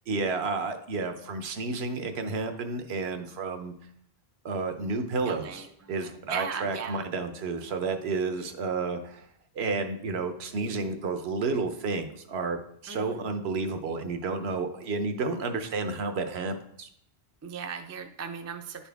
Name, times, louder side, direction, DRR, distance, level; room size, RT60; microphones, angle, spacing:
voice 1, 0.1-3.7 4.4-9.3 9.6-16.9, right 3 dB, 75° right, 7 dB, 1.0 m, -31 dB
voice 2, 5.2-7.0 12.9-13.2 17.4-18.9, right 6 dB, 25° right, 6 dB, 0.3 m, -38 dB
10.5 x 4.3 x 3.4 m, 0.67 s
omnidirectional pair, 1.1 m